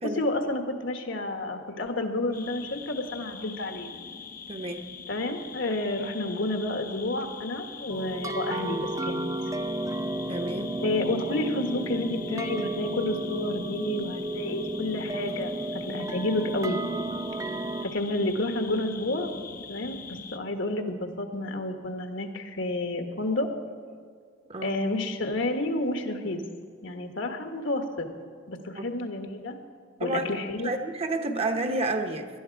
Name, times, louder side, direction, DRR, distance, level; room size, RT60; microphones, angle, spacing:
voice 1, 0.0-3.9 5.1-9.3 10.8-16.8 17.3-17.4 17.8-19.3 19.7-23.5 24.6-26.4 26.8-28.1 28.5-29.6 30.0-30.7, left 2 dB, 75° left, 5 dB, 1.5 m, -30 dB
sound 1, 2.3-20.4, left 6 dB, 45° left, 0.7 m, -43 dB
voice 2, 4.5-4.9 10.3-10.8 24.5-24.8 28.7-28.8 30.0-30.4 30.6-32.3, right 2 dB, 30° right, 6 dB, 1.0 m, -30 dB
sound 2, 7.9-17.8, right 2 dB, 15° right, 0.5 m, -33 dB
18.5 x 12.0 x 4.7 m, 2.1 s
head